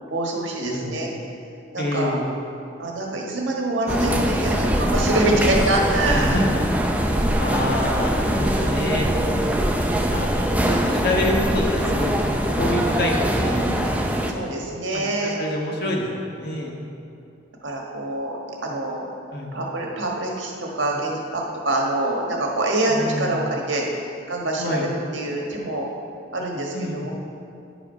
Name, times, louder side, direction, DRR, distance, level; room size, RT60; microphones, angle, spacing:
voice 1, 0.1-1.1 1.7-2.2 2.8-6.4 8.1-9.8 14.3-15.4 17.6-19.1 19.5-23.8 24.3-25.9 26.3-27.1, right 1 dB, 80° right, -1 dB, 1.4 m, -25 dB
voice 2, 0.6-1.0 1.8-2.2 6.1-6.6 7.4-9.1 9.9-10.3 10.7-12.1 12.6-13.9 15.2-16.8 19.3-19.6 23.0-23.4 24.6-24.9 26.7-27.0, left 1 dB, 55° left, -1 dB, 1.3 m, -27 dB
sound 1, 3.9-14.3, equal, 10° right, 0.4 m, -22 dB
9.9 x 5.0 x 5.4 m, 2.5 s
head